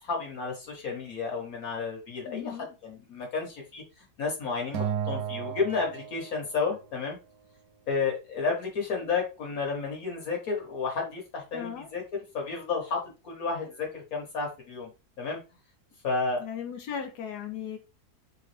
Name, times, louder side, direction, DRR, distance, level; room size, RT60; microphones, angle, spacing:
voice 1, 0.0-7.2 7.9-12.0 12.3-14.9 15.2-15.4 16.0-16.4, left 4 dB, 65° left, 1.5 m, -32 dB
voice 2, 2.2-2.7 11.5-11.9 16.4-17.8, left 8 dB, 80° left, 1.2 m, -37 dB
Acoustic guitar, 4.7-7.1, right 8 dB, 75° right, 1.1 m, -34 dB
3.6 x 2.9 x 3.2 m
omnidirectional pair, 1.7 m